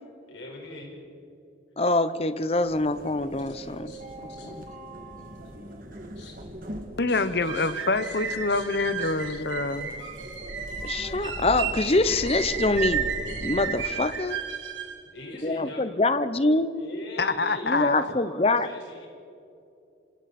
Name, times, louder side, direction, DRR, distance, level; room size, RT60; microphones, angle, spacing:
voice 1, 0.3-1.0 3.8-4.0 4.3-4.5 6.1-6.4 7.1-7.2 7.5-7.7 8.0-8.1 8.5-8.6 9.0-9.1 15.1-15.8 16.7-19.1, left 1 dB, 75° left, -1 dB, 4.9 m, -41 dB
voice 2, 1.8-3.9 4.4-4.5 10.8-13.1 13.4-14.4 15.4-16.7 17.6-18.7, left 2 dB, 30° left, 13 dB, 0.8 m, -25 dB
sound 1, 2.5-13.8, right 1 dB, 45° right, 2.2 m, -40 dB
voice 3, 7.0-9.9 17.2-18.1, left 3 dB, 55° left, 12 dB, 0.9 m, -26 dB
sound 2, 7.2-15.0, right 7 dB, 80° right, 2.6 m, -33 dB
27.0 x 26.5 x 4.3 m, 2.7 s
head